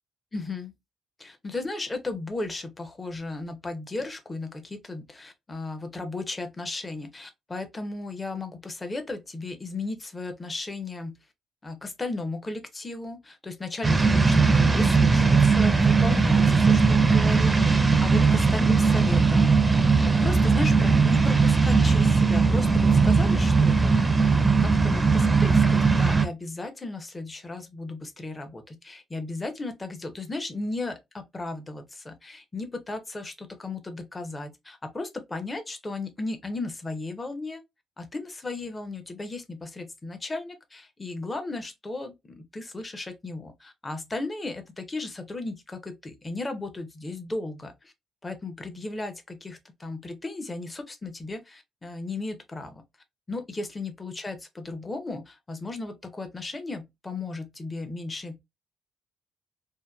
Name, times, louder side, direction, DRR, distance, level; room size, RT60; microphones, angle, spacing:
voice 1, 0.3-0.7 1.2-11.2 11.6-24.2 24.4-37.6 38.0-47.9 48.2-52.8 53.3-58.4, left 2 dB, 20° left, 0.6 m, -35 dB
sound 1, 13.8-26.3, right 4 dB, 20° right, 0.4 m, -19 dB
2.7 x 2.2 x 2.2 m
cardioid pair, 90°, 0 cm